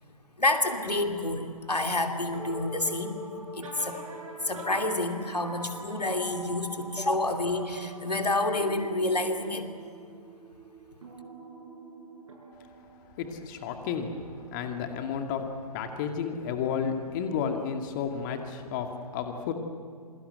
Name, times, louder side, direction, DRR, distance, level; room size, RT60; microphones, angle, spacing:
voice 1, 0.4-3.2 3.6-4.0 4.4-9.7, left 2 dB, 85° left, 5 dB, 2.8 m, -28 dB
sound 1, 0.8-15.0, right 1 dB, 55° right, 7.3 m, -44 dB
voice 2, 13.2-15.4 15.7-19.5, left 7 dB, 30° left, 5 dB, 2.2 m, -32 dB
27.5 x 22.5 x 8.1 m, 2.3 s
figure-of-eight pair, 130°, 20 cm